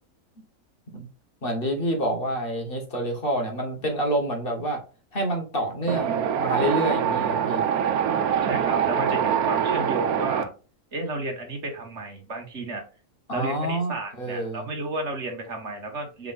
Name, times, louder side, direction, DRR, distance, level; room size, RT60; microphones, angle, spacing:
voice 1, 1.4-4.8 5.1-7.6 13.3-14.7, right 1 dB, 40° left, 3 dB, 1.4 m, -28 dB
Wind, 5.9-10.4, right 8 dB, 85° right, 1.2 m, -24 dB
voice 2, 8.4-10.5 10.9-12.8 13.3-16.3, right 2 dB, 50° right, 3 dB, 1.8 m, -32 dB
5.4 x 3.8 x 2.4 m, 0.35 s
omnidirectional pair, 1.5 m